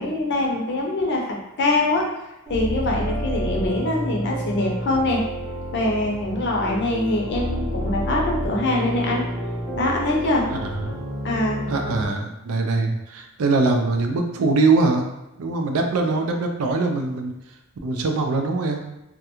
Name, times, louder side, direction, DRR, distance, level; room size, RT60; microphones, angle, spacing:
voice 1, 0.0-2.0 2.5-5.2 5.7-9.2 9.8-10.4 11.2-11.6, left 2 dB, 55° left, -1 dB, 0.6 m, -23 dB
sound 1, 2.5-12.1, equal, 30° right, 0.7 m, -29 dB
voice 2, 10.5-11.0 11.7-15.1 15.4-17.3 17.8-18.8, right 3 dB, 75° right, 4 dB, 0.4 m, -22 dB
2.3 x 2.2 x 2.9 m, 0.94 s
head